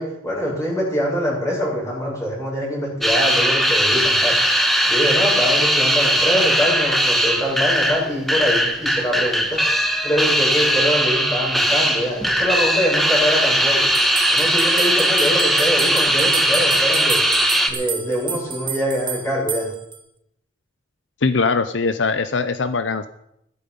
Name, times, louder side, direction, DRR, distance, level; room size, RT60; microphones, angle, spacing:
voice 1, 0.0-4.4 4.9-9.6 10.0-13.9 14.3-17.2 17.7-19.7, equal, 15° left, -5 dB, 8.0 m, -24 dB
sound 1, 3.0-17.7, right 1 dB, ahead, 1.4 m, -19 dB
sound 2, 13.9-20.0, right 7 dB, 25° right, 1.1 m, -30 dB
voice 2, 21.2-23.1, left 4 dB, 70° left, 11 dB, 0.7 m, -21 dB
15.5 x 13.0 x 5.4 m, 0.79 s
head